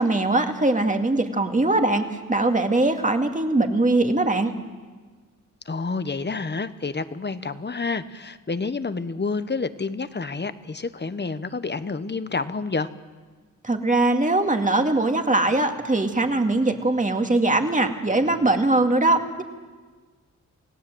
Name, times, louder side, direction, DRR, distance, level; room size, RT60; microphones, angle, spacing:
voice 1, 0.0-2.0 2.3-4.5 13.6-19.4, right 2 dB, 25° right, 5 dB, 2.3 m, -21 dB
voice 2, 5.7-12.9, left 4 dB, 35° left, 12 dB, 1.2 m, -29 dB
29.0 x 17.0 x 8.0 m, 1.4 s
cardioid pair, 70°, 32 cm